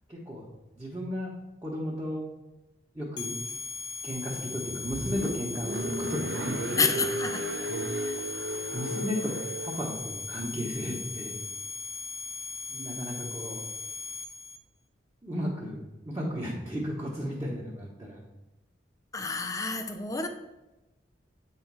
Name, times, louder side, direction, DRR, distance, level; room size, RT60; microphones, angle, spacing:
voice 1, 0.1-0.4 0.8-1.3 1.6-2.2 2.9-3.4 4.0-7.1 7.7-8.2 8.7-11.4 12.7-13.7 15.2-18.2, equal, 20° right, -6 dB, 0.9 m, -34 dB
sound 1, 3.2-14.6, left 5 dB, 75° left, 0.5 m, -38 dB
Car, 4.5-10.0, right 2 dB, 70° right, 0.7 m, -35 dB
voice 2, 6.8-7.7 8.0-8.1 19.1-20.3, left 4 dB, 20° left, 6 dB, 0.4 m, -29 dB
8.2 x 3.1 x 4.6 m, 0.99 s
head